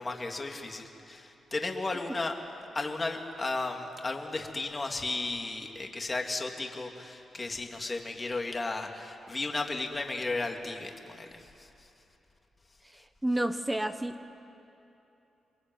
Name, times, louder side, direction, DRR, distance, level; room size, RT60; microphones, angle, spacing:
voice 1, 0.0-2.4 2.7-11.9, left 3 dB, 25° left, 3 dB, 2.8 m, -34 dB
voice 2, 12.9-14.3, right 1 dB, 10° right, 9 dB, 1.1 m, -31 dB
28.0 x 22.0 x 9.5 m, 2.9 s
cardioid pair, 90°, 0 cm